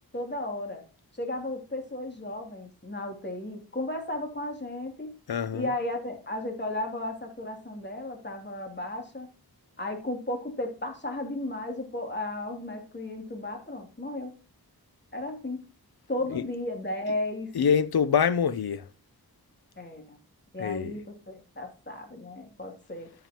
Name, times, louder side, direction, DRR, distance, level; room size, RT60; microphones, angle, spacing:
voice 1, 0.1-0.8 1.1-5.2 5.5-9.3 9.8-14.3 15.1-15.6 16.1-17.5 19.8-20.2 20.5-23.1, left 1 dB, 30° left, 2.8 m, -34 dB
voice 2, 5.3-5.7 16.3-16.4 17.5-18.9 20.6-21.0, left 7 dB, 80° left, 0.7 m, -25 dB
13.0 x 7.3 x 2.9 m
wide cardioid pair, 60°, 37 cm